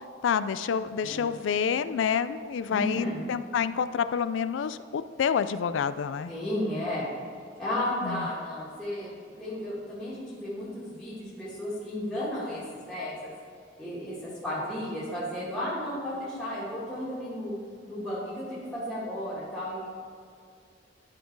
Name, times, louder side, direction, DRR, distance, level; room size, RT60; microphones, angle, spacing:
voice 1, 0.2-6.3 8.0-8.3, left 7 dB, 80° left, 13 dB, 0.3 m, -28 dB
voice 2, 2.7-3.2 6.3-7.1 7.6-9.1 9.4-13.3 13.8-17.5 17.9-19.9, left 1 dB, 5° left, -10 dB, 1.9 m, -33 dB
11.5 x 4.4 x 4.6 m, 2.3 s
head